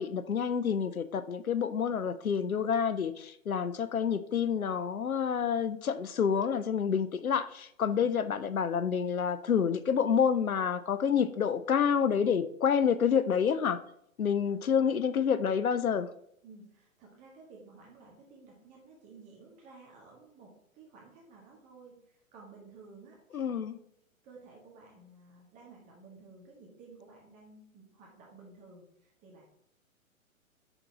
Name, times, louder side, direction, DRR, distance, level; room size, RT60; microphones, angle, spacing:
voice 1, 0.0-13.8 14.2-16.1 23.3-23.7, left 7 dB, 90° left, 0.5 m, -28 dB
voice 2, 16.4-23.4 24.2-29.4, right 4 dB, 20° right, 1.1 m, -54 dB
5.8 x 4.0 x 4.7 m
figure-of-eight pair, 120°, 41 cm